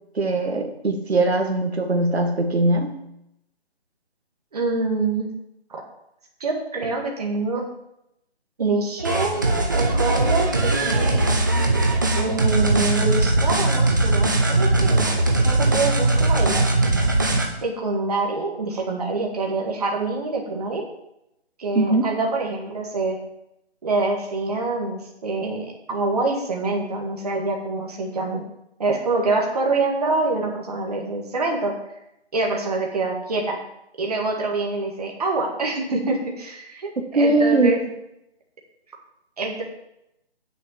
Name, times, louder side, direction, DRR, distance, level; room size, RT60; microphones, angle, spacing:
voice 1, 0.2-3.0 21.8-22.1 37.0-37.8, right 2 dB, 70° right, 3 dB, 1.9 m, -21 dB
voice 2, 4.5-5.3 5.7-5.8 6.4-7.6 8.6-11.2 12.2-15.2 15.4-16.8 17.6-20.9 21.6-23.2 23.8-28.4 28.8-31.7 32.3-33.6 34.0-37.8 39.4-39.6, right 3 dB, 35° right, 0 dB, 2.0 m, -25 dB
sound 1, 9.0-17.5, right 2 dB, 20° right, 0.8 m, -20 dB
8.6 x 6.9 x 7.5 m, 0.82 s
hypercardioid pair, 170°, 33 cm